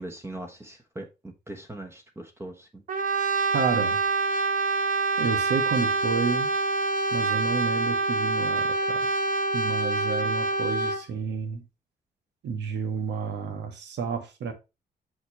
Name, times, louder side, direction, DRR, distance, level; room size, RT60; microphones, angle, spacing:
voice 1, 0.0-2.8, right 1 dB, 15° right, 1.2 m, -40 dB
Brass instrument, 2.9-11.1, right 3 dB, 50° right, 1.0 m, -26 dB
voice 2, 3.5-4.0 5.2-6.5 7.1-9.1 9.5-11.6 12.4-14.5, right 5 dB, 80° right, 1.9 m, -30 dB
6.2 x 6.0 x 3.1 m
cardioid pair, 130°, 18 cm